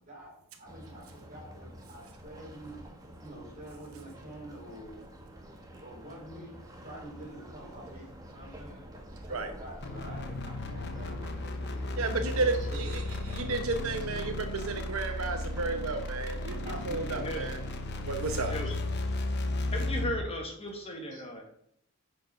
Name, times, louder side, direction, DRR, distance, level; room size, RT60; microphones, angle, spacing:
voice 1, 0.0-2.8 3.2-5.0 5.8-6.5 6.8-8.8 9.3-13.2 16.6-17.3 18.6-18.8 20.4-21.4, right 1 dB, 35° right, -1 dB, 4.3 m, -47 dB
sound 1, 0.7-18.5, equal, 15° right, 1.2 m, -48 dB
sound 2, 9.8-20.3, left 2 dB, 50° left, 0.9 m, -34 dB
voice 2, 12.0-17.6 18.0-18.5, right 3 dB, 80° right, 5 dB, 0.9 m, -33 dB
voice 3, 17.1-17.5 18.5-18.7 19.7-21.4, left 1 dB, 25° left, 2 dB, 1.5 m, -36 dB
8.4 x 5.5 x 5.9 m, 0.70 s
head